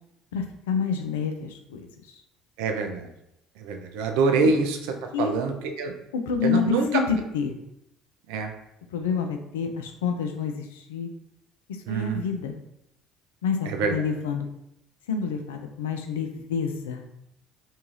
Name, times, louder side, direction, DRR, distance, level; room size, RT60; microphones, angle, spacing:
voice 1, 0.3-1.9 5.1-5.3 6.1-7.6 8.9-11.1 11.7-12.6 13.4-14.5 15.1-17.0, left 6 dB, 85° left, 5 dB, 0.3 m, -28 dB
voice 2, 2.6-3.1 3.6-5.9 6.4-7.0 8.3-8.5 11.9-12.2 13.7-14.0, right 4 dB, 75° right, 4 dB, 0.4 m, -25 dB
2.6 x 2.3 x 3.0 m, 0.80 s
hypercardioid pair, 65°, 0 cm